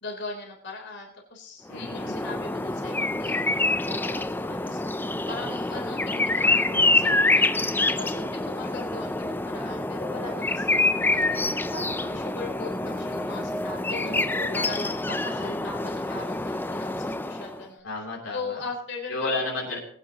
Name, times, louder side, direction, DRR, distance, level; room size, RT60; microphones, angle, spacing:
voice 1, 0.0-4.8 5.3-7.5 7.9-14.1 14.5-17.9 18.3-19.4, left 3 dB, 60° left, 0 dB, 3.6 m, -39 dB
voice 2, 1.7-2.1 13.9-14.7 17.8-18.6 19.1-19.8, left 2 dB, 80° left, -2 dB, 3.2 m, -32 dB
sound 1, 1.7-17.6, left 2 dB, 10° left, 0.4 m, -26 dB
sound 2, 10.2-15.9, equal, 90° right, 1.8 m, -50 dB
20.5 x 9.9 x 2.9 m, 0.63 s
head